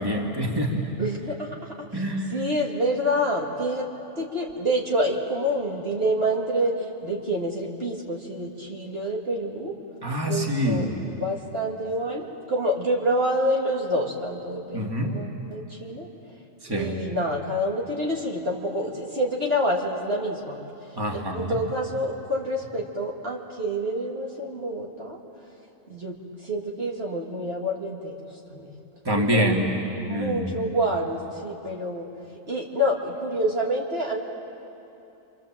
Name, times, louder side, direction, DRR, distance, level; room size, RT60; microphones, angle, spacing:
voice 1, 0.0-0.8 1.9-2.4 10.0-10.9 14.7-15.2 16.6-17.0 20.9-21.6 29.0-29.7 30.1-30.6, equal, 15° right, -1 dB, 2.4 m, -26 dB
voice 2, 1.0-2.0 2.3-3.9 4.2-9.7 10.3-10.9 11.2-16.1 16.7-20.6 21.1-25.2 25.9-26.2 26.4-28.2 28.5-28.7 29.1-29.4 30.1-32.1 32.5-34.2, equal, 50° right, -2 dB, 2.6 m, -27 dB
29.5 x 25.5 x 7.5 m, 2.9 s
omnidirectional pair, 1.4 m